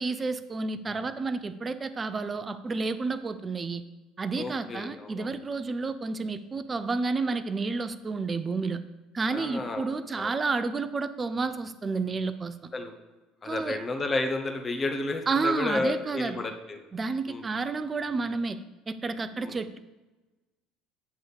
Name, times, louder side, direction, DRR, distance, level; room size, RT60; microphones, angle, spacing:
voice 1, 0.0-3.8 4.2-8.8 9.1-12.7 13.4-13.8 15.3-16.4 16.9-18.6 18.9-19.8, right 4 dB, 30° right, 12 dB, 0.6 m, -30 dB
voice 2, 4.4-5.3 9.3-10.3 12.7-12.9 13.4-16.8 17.3-17.4 19.4-19.6, left 2 dB, 30° left, 5 dB, 1.3 m, -32 dB
7.9 x 3.9 x 6.8 m, 1.2 s
hypercardioid pair, 65°, 0 cm